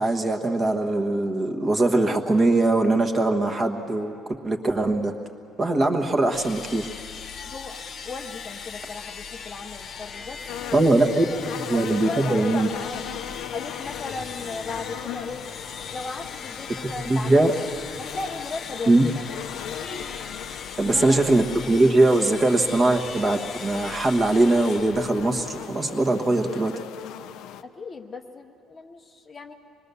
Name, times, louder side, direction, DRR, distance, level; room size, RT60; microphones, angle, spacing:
voice 1, 0.0-4.1 4.4-5.1 5.6-6.9 10.7-11.3 11.7-12.7 17.0-17.5 18.9-19.1 20.8-26.7, right 2 dB, 25° right, 4 dB, 1.3 m, -21 dB
sound 1, 6.3-25.8, left 6 dB, 40° left, 1.1 m, -39 dB
voice 2, 7.5-13.0 13.5-15.5 15.9-17.5 18.0-19.2 20.8-21.2 27.6-29.5, left 3 dB, 25° left, 5 dB, 0.8 m, -36 dB
sound 2, 10.5-27.6, left 10 dB, 75° left, 0.6 m, -38 dB
25.0 x 21.0 x 6.9 m, 2.5 s
cardioid pair, 170°, 0 cm